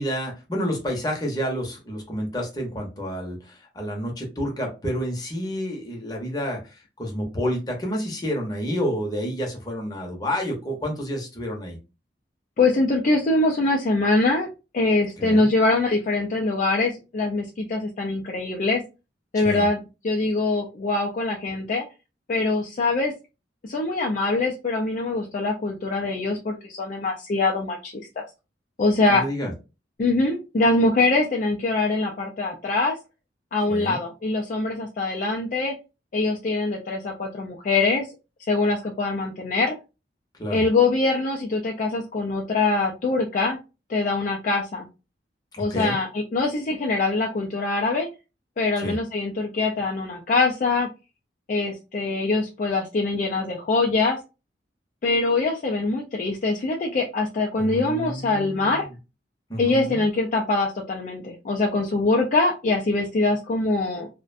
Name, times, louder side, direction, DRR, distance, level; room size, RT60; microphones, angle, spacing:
voice 1, 0.0-11.8 15.2-15.5 19.3-19.7 29.1-29.5 33.7-34.0 40.4-40.6 45.5-46.0 48.8-49.0 57.6-58.8 59.5-60.1, equal, 20° left, 0 dB, 0.7 m, -29 dB
voice 2, 12.6-14.5 14.7-18.8 19.3-19.8 20.0-21.8 22.3-23.1 23.6-28.2 28.8-29.2 30.0-33.0 33.5-35.7 36.1-38.1 38.5-39.7 40.5-43.6 43.9-44.9 45.6-48.1 48.6-50.9 51.5-54.2 55.0-58.9 59.6-64.1, left 3 dB, 45° left, 0 dB, 0.3 m, -23 dB
2.5 x 2.1 x 2.4 m, 0.29 s
head